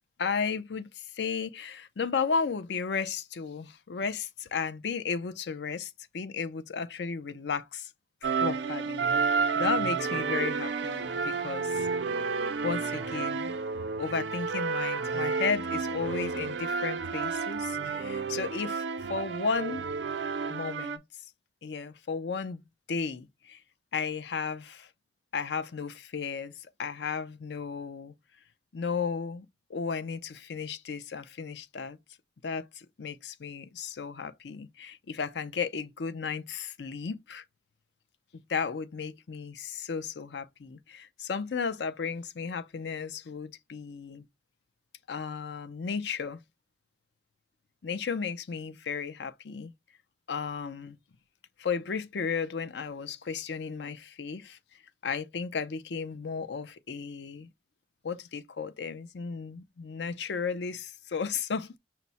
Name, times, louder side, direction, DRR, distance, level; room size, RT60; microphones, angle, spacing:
voice 1, 0.2-7.9 8.2-11.9 12.6-13.6 14.0-18.8 19.1-19.8 20.5-21.0 21.6-22.6 22.9-23.6 23.9-24.9 25.3-28.1 28.7-32.0 32.4-37.4 38.3-44.2 45.1-46.4 47.8-49.7 50.3-51.0 51.6-54.6 55.0-57.5 58.0-61.8, left 5 dB, 70° left, 0.5 m, -34 dB
sound 1, 8.2-21.0, right 5 dB, 85° right, 0.5 m, -31 dB
5.7 x 2.1 x 4.0 m
head